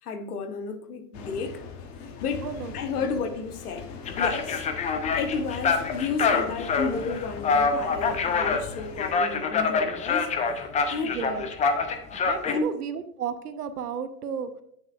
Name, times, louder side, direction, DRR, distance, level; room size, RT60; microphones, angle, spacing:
voice 1, 0.0-1.6 2.2-2.5 2.7-3.9 4.2-4.6 5.1-10.3 10.9-11.2 12.5-12.7, left 4 dB, 75° left, 1.2 m, -32 dB
sound 1, 1.1-9.1, left 5 dB, 35° left, 1.1 m, -41 dB
voice 2, 2.4-2.7 3.0-3.1 11.0-11.5 12.3-14.5, right 7 dB, 80° right, 0.9 m, -33 dB
sound 2, 4.1-12.6, left 5 dB, 15° left, 0.6 m, -26 dB
8.9 x 6.8 x 2.5 m
hypercardioid pair, 105°, 46 cm